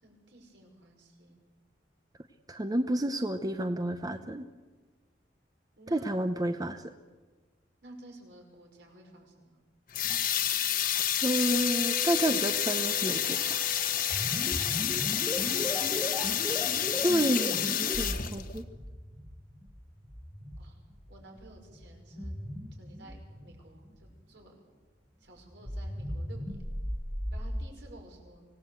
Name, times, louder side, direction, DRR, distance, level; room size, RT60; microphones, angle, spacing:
voice 1, 0.0-1.4 5.8-6.1 7.8-9.6 15.4-16.4 20.6-20.8 21.1-22.3 22.8-24.5 25.2-26.6 27.3-28.5, right 1 dB, 70° right, 2 dB, 5.7 m, -53 dB
voice 2, 2.5-4.5 5.9-6.9 11.2-13.6 17.0-18.7, right 1 dB, 20° right, 9 dB, 0.8 m, -30 dB
sound 1, 9.9-18.6, left 10 dB, 55° left, 1.4 m, -29 dB
Mallet percussion, 11.5-14.9, left 3 dB, 30° left, 1.0 m, -44 dB
sound 2, 14.1-24.2 25.5-27.7, equal, 10° left, 2.0 m, -38 dB
25.5 x 18.0 x 8.1 m, 1.3 s
head